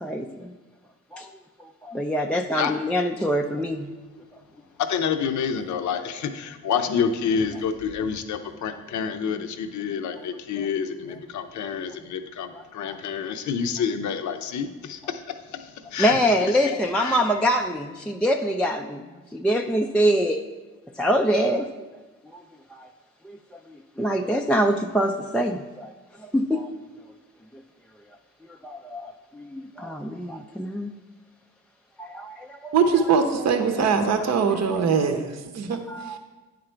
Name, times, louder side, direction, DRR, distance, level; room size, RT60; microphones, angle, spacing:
voice 1, 0.0-0.5 1.1-1.3 1.6-3.9 10.6-10.7 12.9-13.0 16.0-20.4 21.0-21.7 22.3-22.4 22.7-22.9 23.2-23.4 23.7-25.9 26.2-26.7 27.5-27.6 28.4-30.9 32.0-32.7 33.8-33.9 35.9-36.2, equal, 5° left, 2 dB, 0.3 m, -25 dB
voice 2, 4.8-17.2, left 6 dB, 55° left, 7 dB, 0.6 m, -28 dB
voice 3, 32.7-36.2, right 5 dB, 50° right, 6 dB, 0.7 m, -22 dB
9.4 x 3.8 x 4.4 m, 1.2 s
supercardioid pair, 55°, 35 cm